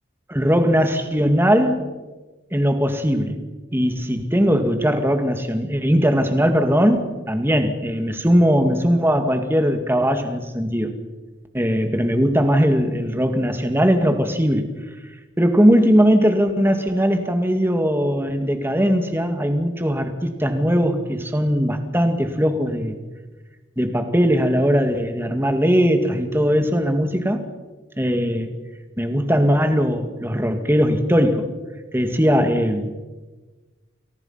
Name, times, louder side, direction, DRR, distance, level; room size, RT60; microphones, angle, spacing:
voice 1, 0.3-1.9 2.5-3.4 3.7-10.9 11.5-14.7 15.4-23.0 23.8-27.5 28.0-28.5 29.0-31.5 31.9-32.8, equal, 10° right, 7 dB, 2.3 m, -19 dB
29.5 x 23.0 x 5.9 m, 1.2 s
head